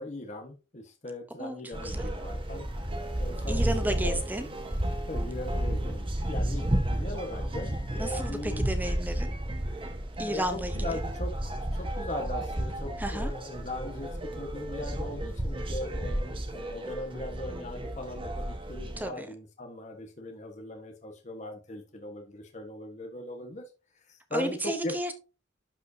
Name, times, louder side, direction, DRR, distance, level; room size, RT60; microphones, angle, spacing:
voice 1, 0.0-2.7 3.2-4.2 5.1-8.7 10.3-23.6 24.1-24.9, left 1 dB, 40° left, 1.4 m, -39 dB
voice 2, 1.4-2.1 3.5-4.5 8.0-9.3 10.2-10.9 13.0-13.3 19.0-19.3 24.3-25.1, right 1 dB, 10° right, 0.8 m, -33 dB
sound 1, 1.7-19.0, right 1 dB, 30° right, 1.3 m, -32 dB
11.5 x 5.2 x 2.7 m
head